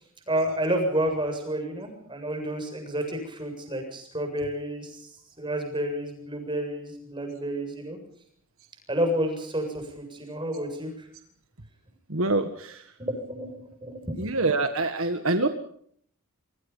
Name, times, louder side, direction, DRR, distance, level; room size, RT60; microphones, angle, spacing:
voice 1, 0.3-5.1 5.4-8.0 8.9-11.1 12.3-12.4 13.0-14.1, right 1 dB, 20° right, 4 dB, 7.6 m, -30 dB
voice 2, 12.1-12.8 14.2-15.5, right 2 dB, 70° right, 8 dB, 1.7 m, -25 dB
26.5 x 24.0 x 5.6 m, 0.64 s
head